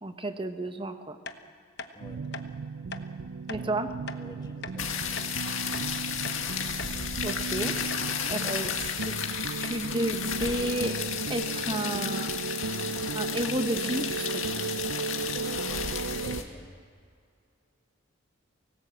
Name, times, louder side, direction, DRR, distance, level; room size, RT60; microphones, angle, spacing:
voice 1, 0.0-1.2 3.5-3.9 7.2-7.8 8.3-8.7 9.6-11.0 11.3-12.3 12.7-14.5, right 1 dB, 25° right, 8 dB, 1.1 m, -32 dB
sound 1, 1.3-1.4 1.8-1.9 2.3-2.5 2.9-3.1 3.5-3.6 4.1-4.2 4.6-4.8 5.2-5.3 5.7-6.5 6.8-7.0 7.3-7.4 7.9-8.1 8.5-8.6 9.0-9.2 9.6-9.8 10.1-10.2 10.4-10.6, left 4 dB, 55° left, 1.1 m, -40 dB
sound 2, 2.0-16.4, right 4 dB, 65° right, 0.5 m, -35 dB
voice 2, 4.1-5.4 8.2-8.8 16.2-16.8, left 1 dB, 20° left, 2 dB, 1.7 m, -48 dB
sound 3, 4.8-16.4, left 7 dB, 70° left, 2.2 m, -33 dB
25.0 x 18.5 x 7.6 m, 2.3 s
head